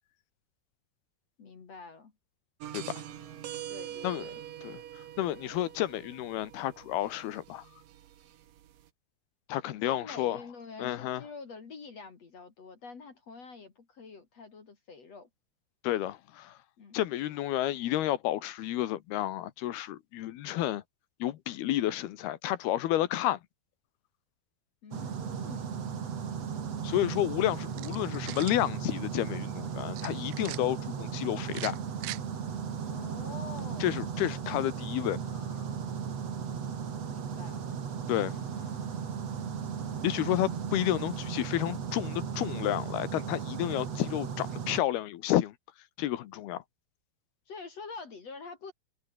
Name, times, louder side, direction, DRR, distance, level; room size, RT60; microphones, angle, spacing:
voice 1, 1.4-2.1 3.7-4.3 9.8-15.3 16.8-17.0 21.7-21.9 24.8-25.8 32.9-34.0 37.1-37.7 47.5-48.7, left 4 dB, 45° left, 3.8 m, -46 dB
sound 1, 2.6-8.9, right 11 dB, 65° right, 3.0 m, -44 dB
voice 2, 4.6-7.7 9.5-10.4 10.8-11.2 15.8-16.6 16.9-20.8 21.2-23.4 26.8-31.8 33.8-35.2 35.6-35.7 38.1-38.4 40.0-45.5 46.0-46.6, left 14 dB, 85° left, 3.2 m, -31 dB
sound 2, 24.9-44.8, right 7 dB, 45° right, 3.3 m, -36 dB
sound 3, 27.7-28.6 30.0-30.6 31.5-32.2, right 20 dB, 85° right, 2.7 m, -41 dB
omnidirectional pair, 4.5 m